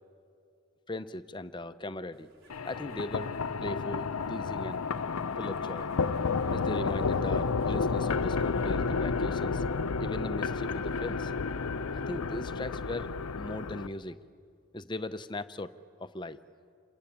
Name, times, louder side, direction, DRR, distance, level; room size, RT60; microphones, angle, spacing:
voice 1, 0.9-2.3 2.6-4.8 5.4-5.9 6.5-9.6 10.0-11.5 11.9-14.2 14.7-15.7 16.0-16.4, left 1 dB, 20° left, 12 dB, 0.7 m, -39 dB
sound 1, 2.1-8.9 9.2-9.8, right 1 dB, 60° right, 5.6 m, -56 dB
sound 2, 2.5-13.9, left 4 dB, 90° left, 0.6 m, -31 dB
28.0 x 22.5 x 8.6 m, 2.5 s
head